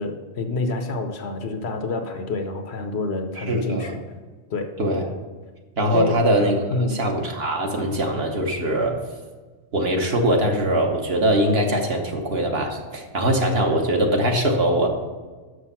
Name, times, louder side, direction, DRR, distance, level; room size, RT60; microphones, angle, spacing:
voice 1, 0.0-4.0 4.5-4.7 5.9-6.2 6.7-7.0, left 3 dB, 60° left, 6 dB, 0.9 m, -27 dB
voice 2, 3.5-4.0 4.8-5.1 5.8-6.6 6.9-9.0 9.7-14.9, right 1 dB, 55° right, 2 dB, 1.3 m, -22 dB
6.4 x 6.3 x 5.7 m, 1.4 s
omnidirectional pair, 1.3 m